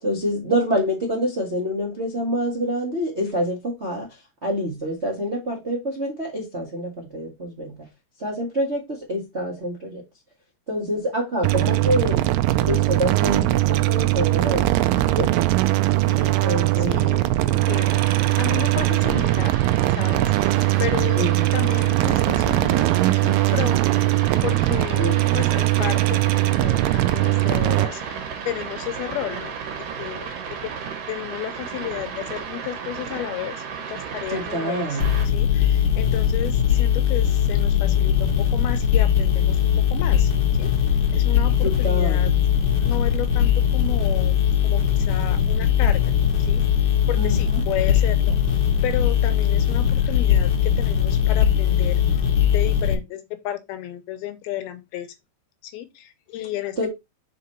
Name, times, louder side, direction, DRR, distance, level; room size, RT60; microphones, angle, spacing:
voice 1, 0.0-4.1 4.4-7.8 8.2-10.0 10.7-12.2 12.6-14.7 14.9-15.3 16.4-17.1 21.2-21.6 25.0-25.4 34.3-35.1 41.6-42.3 47.1-47.6 56.8-56.9, equal, 35° right, 1.0 m, -26 dB
sound 1, 11.4-27.9, right 17 dB, 90° right, 2.7 m, -20 dB
voice 2, 16.1-19.5 20.0-24.1 24.4-30.3 30.6-30.7 31.1-40.3 40.6-40.7 41.1-42.3 42.8-46.0 46.4-46.6 47.1-48.4 48.8-52.2 52.5-55.1 55.6-56.9, left 12 dB, 80° left, 2.7 m, -33 dB
sound 2, 17.6-35.3, right 6 dB, 60° right, 3.0 m, -34 dB
sound 3, 35.0-52.9, left 9 dB, 55° left, 1.7 m, -20 dB
6.2 x 4.8 x 4.2 m
omnidirectional pair, 4.5 m